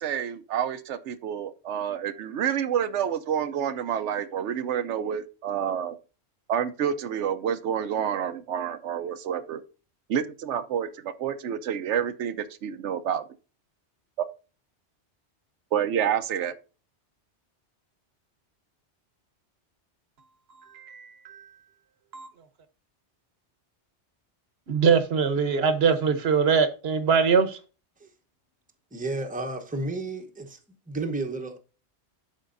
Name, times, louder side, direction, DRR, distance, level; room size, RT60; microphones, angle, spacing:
voice 1, 0.0-6.0 6.5-9.6 10.1-13.2 14.2-14.3 15.7-16.5, right 9 dB, 90° right, 1.0 m, -28 dB
voice 2, 20.7-21.5 22.1-22.3 24.7-27.6, right 6 dB, 65° right, 1.1 m, -23 dB
voice 3, 28.9-30.6 30.9-31.6, right 2 dB, 10° right, 0.8 m, -32 dB
11.5 x 4.6 x 2.5 m
omnidirectional pair, 1.2 m